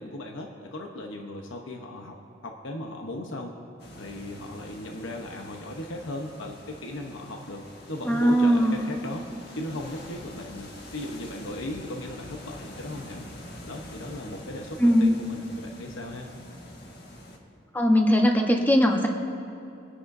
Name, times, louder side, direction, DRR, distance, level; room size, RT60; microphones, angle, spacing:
voice 1, 0.0-2.2 2.4-3.5 4.0-9.3 9.6-13.2 13.7-16.3, left 1 dB, 90° left, 2 dB, 1.0 m, -37 dB
sound 1, 3.8-17.4, left 1 dB, 55° left, 1.7 m, -45 dB
voice 2, 8.0-8.8 14.8-15.2 17.7-19.1, equal, 10° left, 2 dB, 1.0 m, -20 dB
24.5 x 10.0 x 2.7 m, 2.9 s
head